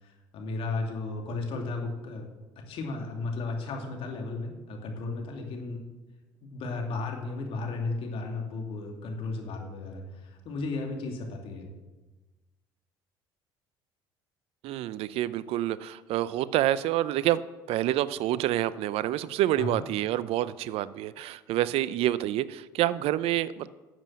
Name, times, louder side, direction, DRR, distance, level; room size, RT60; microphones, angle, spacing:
voice 1, 0.0-2.3 2.6-5.8 6.4-11.7 19.6-19.8, left 3 dB, 60° left, 2 dB, 2.7 m, -34 dB
voice 2, 14.6-17.4 17.7-23.7, right 13 dB, 65° right, 17 dB, 0.5 m, -27 dB
11.0 x 7.6 x 7.6 m, 1.2 s
supercardioid pair, 75°, 11 cm